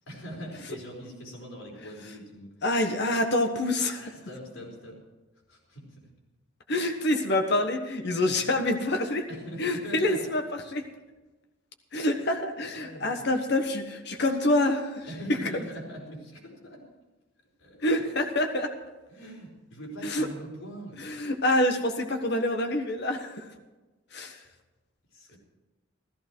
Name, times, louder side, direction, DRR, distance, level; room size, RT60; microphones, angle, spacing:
voice 1, 0.1-2.5 3.9-5.0 5.5-6.1 9.3-10.4 12.7-13.3 15.1-16.8 17.6-18.1 19.1-21.0 25.1-25.4, equal, 80° left, -1 dB, 4.6 m, -42 dB
voice 2, 2.6-4.0 6.7-9.3 9.6-10.8 11.9-15.1 17.8-18.7 20.0-20.3 21.0-23.5 24.1-24.4, left 1 dB, 55° left, 5 dB, 1.3 m, -26 dB
14.5 x 14.0 x 4.6 m, 1.1 s
head